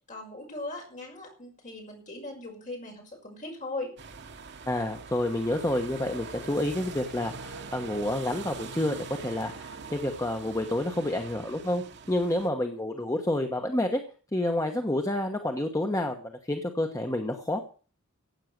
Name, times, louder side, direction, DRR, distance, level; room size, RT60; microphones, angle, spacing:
voice 1, 0.1-3.9, left 2 dB, 40° left, 1 dB, 5.9 m, -39 dB
sound 1, 4.0-12.5, right 4 dB, 55° right, 1.2 m, -43 dB
voice 2, 4.7-14.0 14.3-17.6, left 1 dB, 15° left, 4 dB, 1.2 m, -29 dB
15.5 x 8.7 x 6.6 m, 0.40 s
head